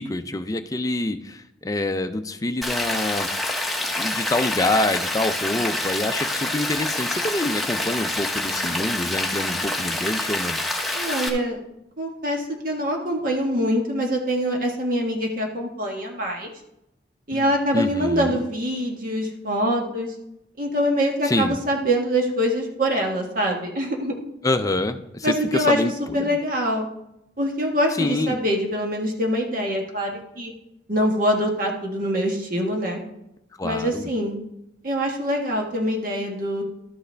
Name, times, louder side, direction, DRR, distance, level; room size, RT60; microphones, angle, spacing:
voice 1, 0.0-3.3 3.9-10.6 17.3-18.4 21.2-21.6 24.4-26.4 28.0-28.4 33.6-34.1, left 2 dB, 20° left, 8 dB, 0.5 m, -26 dB
Rain, 2.6-11.3, left 1 dB, ahead, 1.0 m, -27 dB
voice 2, 10.9-11.6 12.0-16.5 17.3-20.1 20.6-24.1 25.2-25.8 26.1-26.9 27.4-30.5 30.9-33.0 33.6-34.3 34.8-36.6, equal, 50° right, 1 dB, 1.5 m, -24 dB
12.0 x 8.0 x 3.4 m, 0.84 s
head